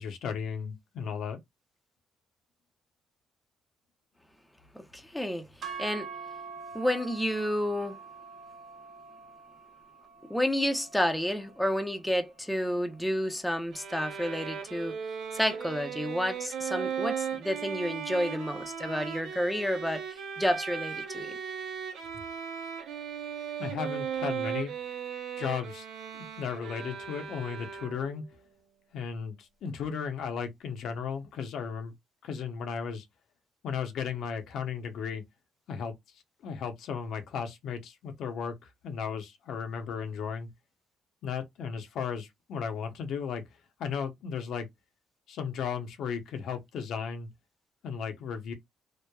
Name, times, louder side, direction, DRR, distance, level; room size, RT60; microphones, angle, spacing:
voice 1, 0.0-1.4 23.6-24.7 25.4-25.8 26.1-28.2 28.9-31.9 32.2-33.1 33.6-35.2 35.7-35.9 36.4-40.5 41.2-43.4 43.8-44.7 45.3-47.3 47.8-48.5, left 6 dB, 75° left, 0.7 m, -35 dB
voice 2, 4.7-5.5 5.8-6.1 6.7-8.0 10.3-14.9 15.3-20.0 20.4-21.3, equal, 5° left, 0.6 m, -30 dB
sound 1, 5.6-13.9, right 6 dB, 60° right, 0.9 m, -46 dB
Bowed string instrument, 13.7-28.2, right 7 dB, 85° right, 0.6 m, -37 dB
3.0 x 2.2 x 2.2 m
cardioid pair, 90°, 0 cm